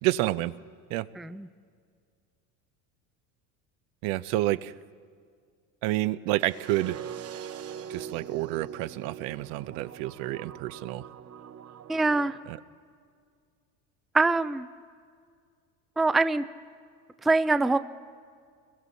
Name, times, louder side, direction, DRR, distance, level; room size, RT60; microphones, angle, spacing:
voice 1, 0.0-0.5 0.9-1.1 4.0-4.7 5.8-7.0 7.9-11.0 12.5-12.6, right 16 dB, 70° right, 14 dB, 0.8 m, -29 dB
voice 2, 1.2-1.5 11.9-12.4 14.1-14.7 16.0-16.4 17.2-17.8, right 3 dB, ahead, 11 dB, 0.4 m, -23 dB
sound 1, 6.4-12.4, right 8 dB, 35° right, 0.9 m, -42 dB
29.0 x 22.0 x 4.1 m, 2.1 s
supercardioid pair, 90°, 41 cm